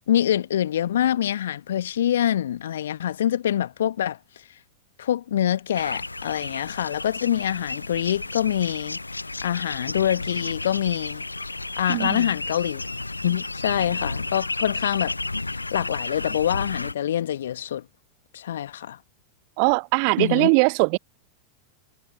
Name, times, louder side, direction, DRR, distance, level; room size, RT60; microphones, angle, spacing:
voice 1, 0.1-4.2 5.0-11.2 11.8-12.9 13.2-15.2 15.7-17.8 18.3-19.0 20.2-20.5, left 10 dB, 65° left, 1.6 m, -25 dB
sound 1, 5.8-16.9, left 2 dB, 85° left, 0.7 m, -32 dB
voice 2, 11.9-12.2 19.6-21.0, right 40 dB or more, 45° right, 0.5 m, -20 dB
figure-of-eight pair, 90°, 0 cm